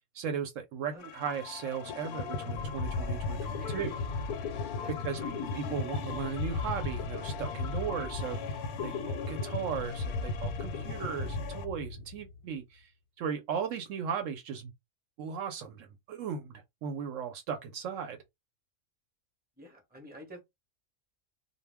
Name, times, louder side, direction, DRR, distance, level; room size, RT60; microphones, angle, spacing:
voice 1, 0.1-3.9 5.0-5.2 5.5-12.9 13.2-14.7 15.2-18.2, right 7 dB, 70° right, 0.9 m, -37 dB
sound 1, 1.0-11.6, left 8 dB, 65° left, 0.7 m, -43 dB
sound 2, 1.6-1.7 1.9-12.4, left 3 dB, 85° left, 1.0 m, -36 dB
voice 2, 3.6-4.0 4.8-4.9 5.2-5.5 19.6-20.4, left 1 dB, 10° right, 0.7 m, -46 dB
2.2 x 2.1 x 3.3 m
omnidirectional pair, 1.4 m